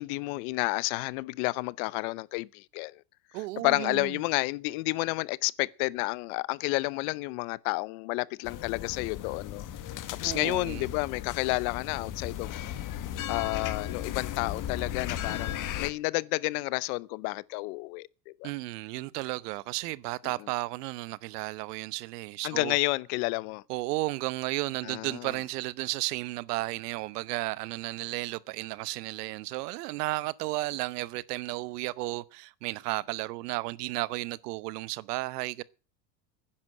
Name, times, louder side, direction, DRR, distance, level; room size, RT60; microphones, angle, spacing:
voice 1, 0.0-3.0 3.6-9.7 10.2-12.7 13.3-18.5 22.4-23.6 24.8-25.3, left 24 dB, 60° left, 0.8 m, -30 dB
voice 2, 3.3-4.2 10.2-10.9 18.4-22.8 23.7-35.6, right 20 dB, 70° right, 0.9 m, -33 dB
sound 1, 8.4-15.9, left 11 dB, 40° left, 1.6 m, -36 dB
11.0 x 10.5 x 7.7 m
supercardioid pair, 110°, 48 cm